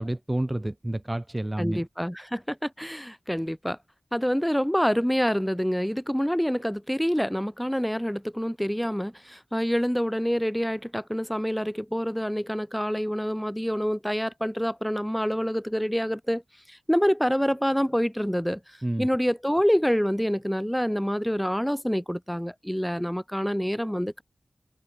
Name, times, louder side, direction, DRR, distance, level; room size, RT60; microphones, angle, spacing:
voice 1, 0.0-1.8 18.8-19.1, right 1 dB, 25° right, 1.9 m, -29 dB
voice 2, 1.6-3.8 4.1-16.4 16.7-24.2, equal, 5° left, 6.8 m, -27 dB
cardioid pair, 45°, 0 cm